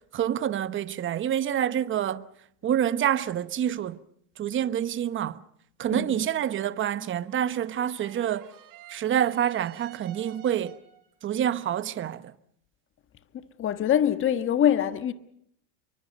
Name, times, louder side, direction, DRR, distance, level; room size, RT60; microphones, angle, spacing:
voice 1, 0.0-2.2 2.6-4.0 4.4-5.4 5.8-8.5 8.9-10.8 11.2-12.3, right 10 dB, 30° right, 1.1 m, -27 dB
sound 1, 7.2-11.1, right 11 dB, 50° right, 3.9 m, -50 dB
voice 2, 13.6-15.1, left 10 dB, 30° left, 1.4 m, -23 dB
29.5 x 24.0 x 5.4 m
supercardioid pair, 125°, 42 cm